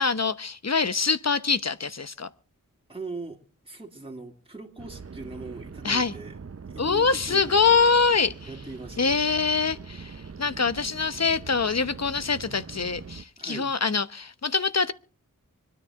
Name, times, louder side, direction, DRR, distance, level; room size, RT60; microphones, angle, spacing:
voice 1, 0.0-2.3 5.8-6.1 6.8-8.3 9.0-14.9, left 5 dB, 50° left, 0.9 m, -24 dB
voice 2, 2.9-3.4 3.6-6.4 6.7-7.6 8.4-9.2 13.4-13.7, right 3 dB, 15° right, 3.0 m, -40 dB
sound 1, 4.8-13.2, right 5 dB, 45° right, 0.8 m, -42 dB
25.5 x 10.0 x 3.7 m
wide cardioid pair, 40°, 33 cm